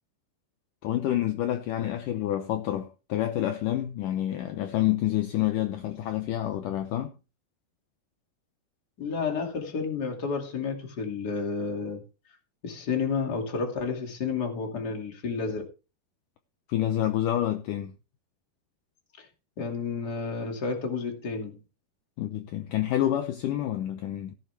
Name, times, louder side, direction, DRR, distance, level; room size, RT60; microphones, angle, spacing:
voice 1, 0.8-7.1 16.7-17.9 22.2-24.3, left 12 dB, 80° left, 1.9 m, -28 dB
voice 2, 9.0-12.0 12.6-15.6 19.2-19.3 19.6-21.6, left 5 dB, 30° left, 2.2 m, -31 dB
17.5 x 7.5 x 3.4 m
omnidirectional pair, 4.9 m